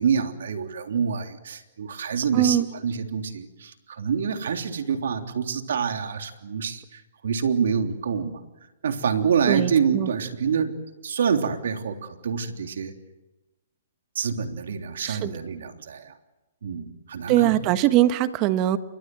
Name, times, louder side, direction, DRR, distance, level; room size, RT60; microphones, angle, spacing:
voice 1, 0.0-8.4 8.8-10.7 11.0-12.9 14.1-16.1 16.6-17.7, right 6 dB, 75° right, 5 dB, 3.3 m, -27 dB
voice 2, 2.3-2.7 9.5-10.1 15.0-15.3 17.3-18.8, right 13 dB, 30° right, 11 dB, 1.5 m, -21 dB
29.0 x 24.0 x 7.9 m, 1.1 s
hypercardioid pair, 150°, 0 cm